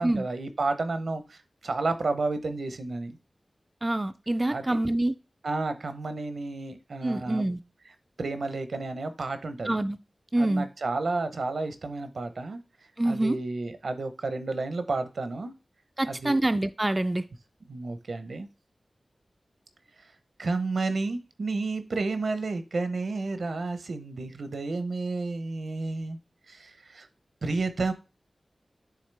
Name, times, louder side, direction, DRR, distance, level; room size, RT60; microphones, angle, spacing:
voice 1, 0.0-3.2 4.5-4.8 5.4-7.4 8.2-9.8 10.4-12.6 13.0-15.5 16.0-16.4 17.7-18.5 20.4-26.2 26.5-27.1 27.4-27.9, right 3 dB, 85° right, 10 dB, 0.7 m, -31 dB
voice 2, 3.8-5.1 7.0-7.6 9.7-10.0 10.3-10.7 13.0-13.4 16.0-17.3, right 1 dB, 25° right, 9 dB, 0.3 m, -26 dB
9.4 x 3.6 x 3.3 m, 0.31 s
wide cardioid pair, 70°, 0 cm